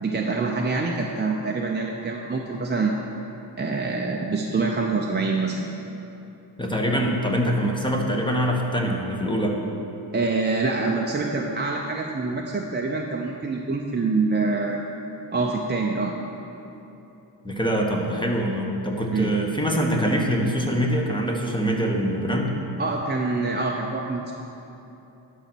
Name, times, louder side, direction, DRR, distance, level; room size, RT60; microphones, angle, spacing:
voice 1, 0.0-2.9 3.6-5.7 10.1-14.8 15.3-16.1 19.1-19.3 22.8-24.4, right 3 dB, 25° right, 0 dB, 0.5 m, -25 dB
voice 2, 6.6-9.6 17.4-22.5, equal, 10° left, 0 dB, 1.2 m, -24 dB
12.0 x 4.1 x 6.1 m, 3.0 s
cardioid pair, 90°, 46 cm